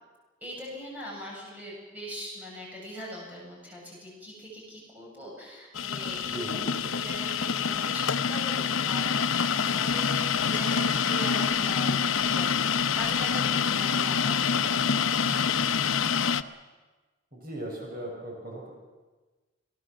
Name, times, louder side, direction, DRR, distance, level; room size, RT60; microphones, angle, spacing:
voice 1, 0.4-6.4 6.8-9.1 9.5-15.6, equal, 10° right, -4 dB, 7.4 m, -41 dB
sound 1, 5.7-16.4, left 6 dB, 75° left, 0.8 m, -26 dB
voice 2, 6.2-6.7 17.3-18.7, right 1 dB, 45° right, -1 dB, 6.6 m, -38 dB
27.5 x 19.0 x 7.5 m, 1.3 s
head